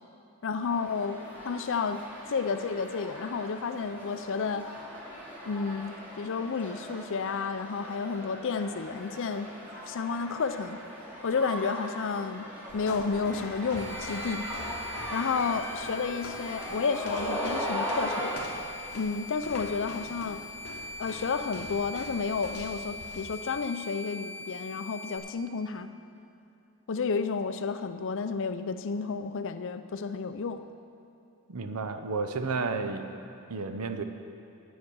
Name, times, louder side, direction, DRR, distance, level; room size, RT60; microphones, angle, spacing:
voice 1, 0.4-2.0 2.3-4.7 5.4-9.5 9.9-10.8 11.2-12.5 12.7-14.5 15.1-18.3 18.9-20.4 21.0-25.9 26.9-30.6, left 5 dB, 60° left, 10 dB, 0.5 m, -31 dB
sound 1, 0.6-18.3, equal, 10° right, 2.6 m, -39 dB
sound 2, 12.7-23.4, left 3 dB, 80° left, 0.9 m, -45 dB
sound 3, 13.8-25.2, left 2 dB, 25° right, 2.0 m, -42 dB
voice 2, 31.5-33.2 33.5-34.0, right 4 dB, 85° right, 8 dB, 0.7 m, -32 dB
10.0 x 8.3 x 6.2 m, 2.7 s
head